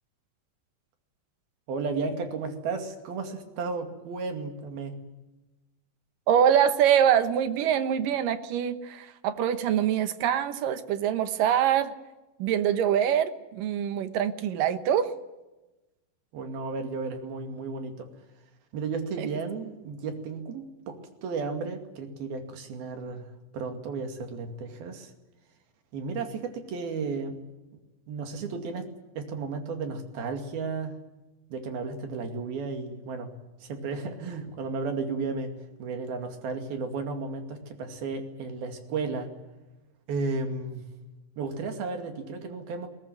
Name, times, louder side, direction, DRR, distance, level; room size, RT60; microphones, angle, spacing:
voice 1, 1.7-4.9 16.3-18.1 18.7-23.2 23.5-25.1 25.9-27.4 28.1-28.9 29.2-31.0 31.5-33.3 33.6-35.5 35.8-39.3 40.1-40.8 41.4-42.9, right 4 dB, 90° right, 5 dB, 4.3 m, -33 dB
voice 2, 6.3-11.9 12.4-15.1 19.2-19.3, right 9 dB, 70° right, 11 dB, 2.7 m, -24 dB
21.0 x 18.5 x 9.3 m, 1.1 s
omnidirectional pair, 4.2 m